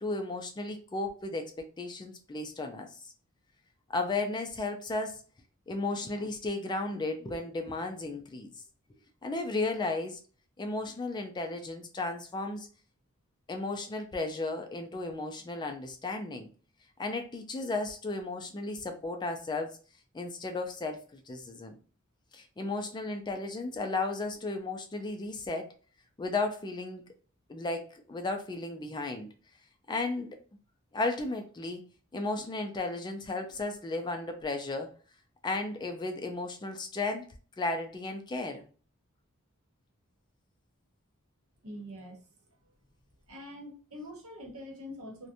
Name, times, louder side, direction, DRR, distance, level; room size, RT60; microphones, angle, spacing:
voice 1, 0.0-2.9 3.9-5.2 5.7-8.5 9.2-10.2 10.6-12.7 13.5-16.5 17.0-19.8 20.1-21.7 22.3-25.7 26.2-27.0 27.5-29.3 29.9-30.4 30.9-31.8 32.1-34.9 35.4-37.3 37.6-38.6, left 2 dB, 20° left, 5 dB, 0.3 m, -34 dB
voice 2, 41.6-42.2 43.3-45.3, left 1 dB, 75° right, 1 dB, 0.9 m, -44 dB
2.5 x 2.1 x 2.7 m, 0.38 s
head